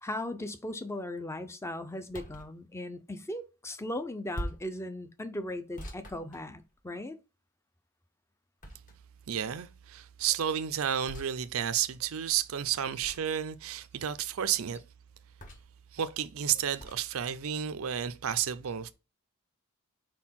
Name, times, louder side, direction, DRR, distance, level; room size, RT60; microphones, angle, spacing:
voice 1, 0.0-7.2, left 1 dB, 10° left, 0.6 m, -38 dB
sound 1, 2.1-2.5 4.3-4.8 5.8-6.9 8.6-9.2 11.0-11.3 13.0-13.4 15.4-15.8 16.8-17.0, equal, 35° left, 1.4 m, -42 dB
voice 2, 9.3-14.8 15.9-18.9, right 9 dB, 70° right, 0.5 m, -31 dB
4.6 x 4.5 x 5.7 m
head